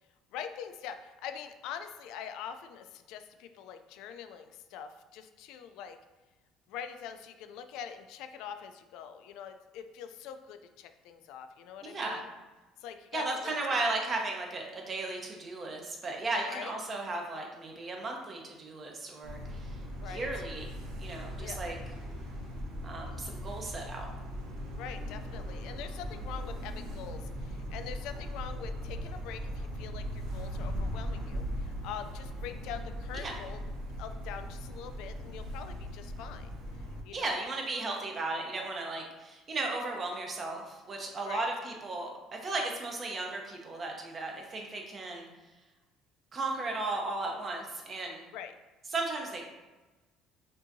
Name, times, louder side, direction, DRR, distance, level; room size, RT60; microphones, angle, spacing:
voice 1, 0.3-6.0 6.7-12.3 12.8-13.8 16.5-16.7 19.9-20.3 21.3-21.6 24.8-33.6 34.0-36.5 37.0-37.4 41.2-41.5 48.3-48.5, left 8 dB, 75° left, 8 dB, 0.3 m, -44 dB
voice 2, 11.8-12.2 13.1-21.8 22.8-24.1 33.1-33.4 37.1-45.3 46.3-48.2 48.9-49.4, right 2 dB, 30° right, 1 dB, 0.7 m, -35 dB
sound 1, 19.2-37.0, equal, 75° right, 1.0 m, -39 dB
5.4 x 2.7 x 2.6 m, 1.2 s
cardioid pair, 140°, 0 cm